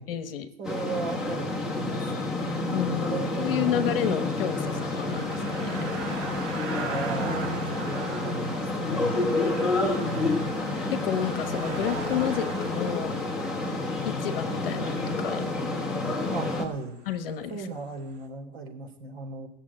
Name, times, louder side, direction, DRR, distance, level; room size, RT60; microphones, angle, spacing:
voice 1, 0.0-0.5 2.7-5.9 8.9-9.1 10.9-13.1 14.0-15.4 17.1-17.5, left 10 dB, 50° left, 11 dB, 1.2 m, -30 dB
sound 1, 0.6-16.7, left 2 dB, ahead, 1.1 m, -29 dB
voice 2, 0.6-2.3 3.0-3.9 6.6-9.3 10.0-10.6 16.3-17.0 17.5-19.5, right 4 dB, 60° right, 3 dB, 3.7 m, -36 dB
sound 2, 3.2-17.7 18.1-18.2, right 4 dB, 90° right, 4.1 m, -40 dB
17.5 x 7.2 x 8.7 m, 0.80 s
supercardioid pair, 175°, 35 cm